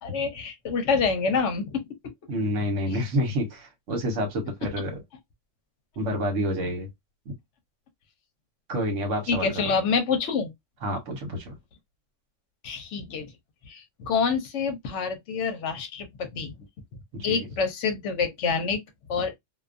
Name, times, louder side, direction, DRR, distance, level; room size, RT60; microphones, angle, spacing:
voice 1, 0.0-1.8 9.3-10.5 12.6-13.3 13.6-16.5 17.2-18.8 19.1-19.3, left 5 dB, 65° left, 0.9 m, -27 dB
voice 2, 2.3-5.0 6.0-6.9 8.7-9.8 10.8-11.5 17.1-17.5, equal, 70° right, 1.3 m, -28 dB
2.5 x 2.3 x 2.4 m
omnidirectional pair, 1.4 m